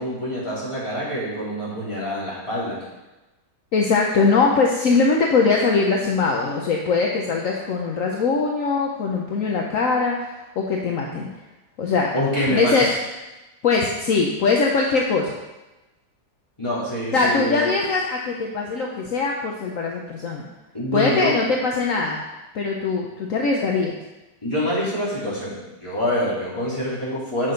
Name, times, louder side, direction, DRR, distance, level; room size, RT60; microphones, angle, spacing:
voice 1, 0.0-2.8 12.1-12.9 16.6-17.6 20.7-21.4 24.4-27.5, equal, 15° left, -9 dB, 3.9 m, -25 dB
voice 2, 3.7-11.3 11.8-12.1 12.5-12.9 13.6-15.3 17.1-20.5 20.9-22.2 22.5-24.0, left 4 dB, 55° left, 0 dB, 1.0 m, -21 dB
9.5 x 6.2 x 5.2 m, 1.1 s
omnidirectional pair, 2.2 m